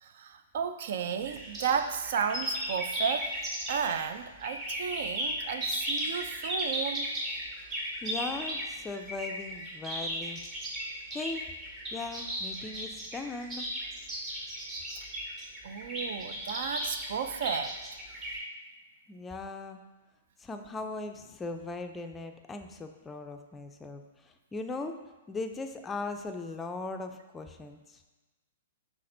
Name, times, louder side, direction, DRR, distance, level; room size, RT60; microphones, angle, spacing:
voice 1, 0.0-3.3 3.7-7.1 15.6-18.0, right 7 dB, 60° right, 9 dB, 0.3 m, -33 dB
sound 1, 1.2-4.0 4.4-18.4, equal, 25° right, 1.1 m, -35 dB
voice 2, 8.0-10.4 11.1-11.5 11.9-13.7 19.1-19.8 20.4-25.0 25.3-28.0, left 3 dB, 15° left, 5 dB, 0.4 m, -39 dB
5.7 x 3.4 x 2.6 m, 1.2 s
hypercardioid pair, 125°, 0 cm